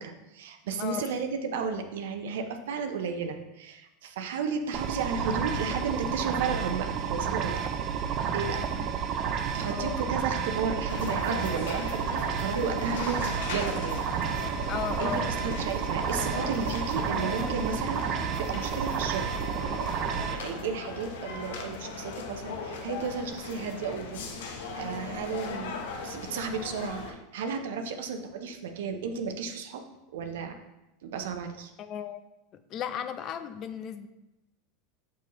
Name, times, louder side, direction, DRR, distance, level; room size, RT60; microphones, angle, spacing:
voice 1, 0.0-7.8 8.3-8.7 9.1-9.2 9.5-14.1 14.7-19.3 20.3-29.8 30.1-30.6 31.0-31.7, right 5 dB, 80° right, 6 dB, 0.7 m, -33 dB
sound 1, 4.7-20.4, right 7 dB, 45° right, 0.5 m, -31 dB
voice 2, 9.6-10.0 14.7-15.3 31.8-32.2 32.7-34.1, left 9 dB, 40° left, 10 dB, 0.5 m, -35 dB
sound 2, 10.9-27.1, left 4 dB, 85° left, 0.8 m, -38 dB
7.0 x 4.6 x 3.1 m, 0.96 s
supercardioid pair, 120°, 0 cm